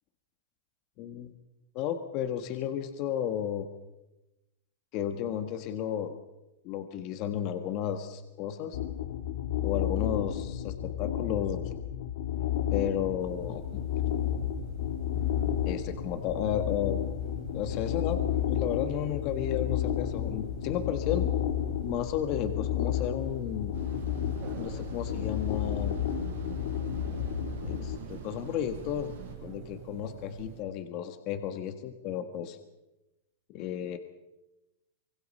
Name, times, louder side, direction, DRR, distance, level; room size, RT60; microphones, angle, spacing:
voice 1, 1.0-1.3 1.7-3.7 4.9-6.2 6.6-8.8 9.6-11.7 12.7-13.8 15.6-17.0 17.5-18.2 18.5-21.3 21.8-23.7 24.5-26.0 27.6-29.1 29.4-32.6 33.5-34.0, left 10 dB, 40° left, 8 dB, 1.5 m, -33 dB
sound 1, 8.7-28.0, left 10 dB, 80° left, 2.6 m, -32 dB
sound 2, 13.2-30.6, right 10 dB, 45° right, 3.4 m, -47 dB
sound 3, 23.7-29.3, right 8 dB, 80° right, 6.3 m, -45 dB
25.0 x 22.0 x 5.5 m, 0.96 s
supercardioid pair, 155°, 0 cm